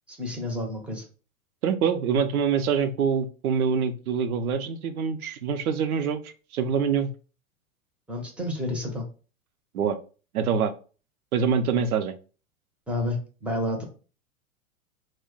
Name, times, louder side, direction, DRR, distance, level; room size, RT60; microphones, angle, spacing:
voice 1, 0.1-1.0 8.1-9.0 12.9-13.8, left 1 dB, 5° right, 1 dB, 0.6 m, -30 dB
voice 2, 1.6-7.1 9.7-10.0 10.3-10.7 11.3-12.1, right 6 dB, 75° right, 10 dB, 0.6 m, -25 dB
2.4 x 2.1 x 3.7 m, 0.36 s
hypercardioid pair, 105°, 43 cm